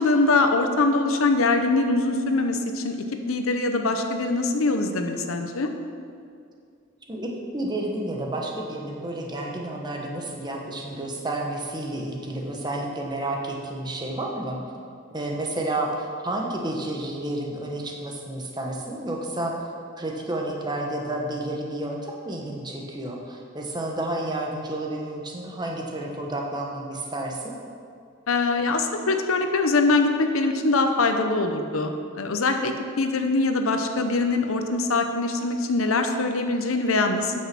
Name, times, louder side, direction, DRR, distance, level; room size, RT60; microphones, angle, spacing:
voice 1, 0.0-3.0 3.3-5.7 28.3-37.4, left 3 dB, 90° left, 6 dB, 0.8 m, -23 dB
voice 2, 7.1-14.6 15.1-19.7 20.0-27.5, right 1 dB, 20° right, 0 dB, 1.1 m, -30 dB
9.1 x 6.4 x 6.0 m, 2.3 s
head